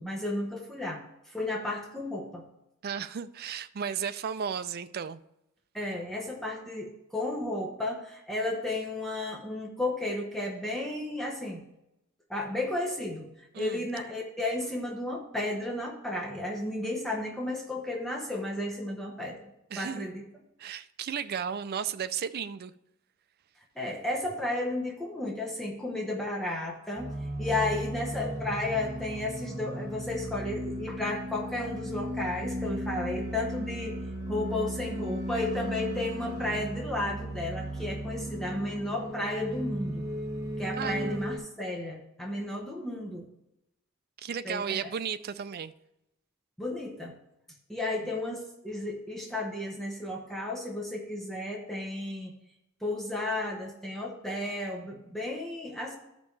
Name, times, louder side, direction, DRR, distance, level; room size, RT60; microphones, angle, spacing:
voice 1, 0.0-2.4 5.7-11.6 12.3-13.3 13.6-19.5 19.8-20.2 23.8-27.1 27.4-34.0 34.3-40.1 40.6-43.3 44.4-44.9 46.6-47.1 47.7-52.3 52.8-55.9, left 2 dB, ahead, 0.8 m, -33 dB
voice 2, 2.8-5.2 13.5-13.9 19.7-20.1 20.6-22.7 27.5-27.9 40.7-41.2 44.2-45.7, right 7 dB, 45° right, 0.4 m, -34 dB
sound 1, 27.0-41.4, equal, 15° right, 1.6 m, -36 dB
13.5 x 5.2 x 3.2 m
head